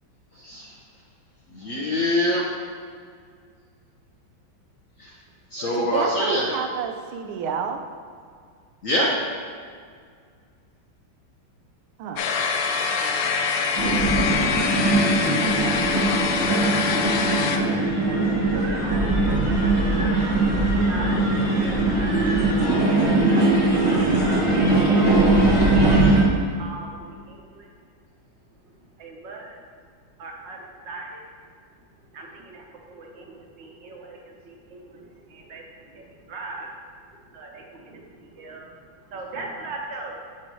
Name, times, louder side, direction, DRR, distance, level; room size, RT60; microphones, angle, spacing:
voice 1, 1.5-2.4 5.0-5.1 5.5-6.4 8.8-9.1 14.7-15.4, left 1 dB, 60° left, -4 dB, 0.9 m, -25 dB
voice 2, 5.7-7.9 12.0-12.2, right 6 dB, 85° right, 5 dB, 1.5 m, -29 dB
sound 1, 12.2-17.6, left 5 dB, 75° left, 1.1 m, -24 dB
sound 2, 13.8-26.2, right 2 dB, 20° right, 1.0 m, -20 dB
voice 3, 16.4-17.9 18.4-19.4 20.3-22.7 23.1-25.3 25.8-27.7 28.6-29.6 30.2-31.2 32.1-36.7 37.3-38.7 39.1-40.2, right 2 dB, 65° right, 0 dB, 1.5 m, -40 dB
7.3 x 3.2 x 6.0 m, 2.1 s
omnidirectional pair, 2.2 m